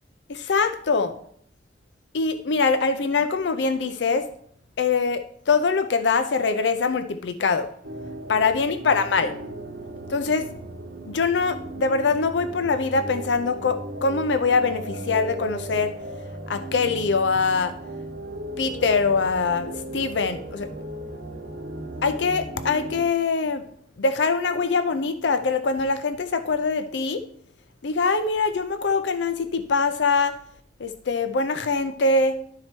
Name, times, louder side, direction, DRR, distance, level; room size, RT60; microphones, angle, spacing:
voice 1, 0.3-1.1 2.1-4.3 4.8-7.7 8.3-9.3 10.1-10.5 11.1-15.9 16.5-17.7 18.6-20.7 22.0-23.6 24.0-27.2 27.8-30.3 30.8-32.3, left 4 dB, 75° left, 9 dB, 0.5 m, -23 dB
sound 1, 7.8-23.1, right 1 dB, 70° right, 1.2 m, -36 dB
11.5 x 4.4 x 4.4 m, 0.65 s
head